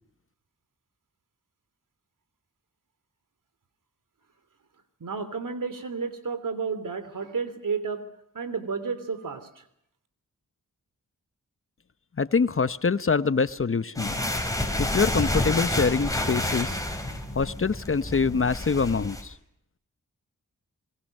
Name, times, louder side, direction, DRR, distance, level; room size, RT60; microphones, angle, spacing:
voice 1, 5.0-8.0 8.3-9.6, right 5 dB, 70° right, 12 dB, 3.1 m, -31 dB
voice 2, 12.2-14.2 14.8-16.8 17.3-19.3, left 5 dB, 40° left, 15 dB, 0.9 m, -25 dB
sound 1, 13.9-19.2, left 1 dB, 10° left, 5.6 m, -29 dB
26.5 x 22.0 x 6.6 m, 0.75 s
cardioid pair, 50°, 33 cm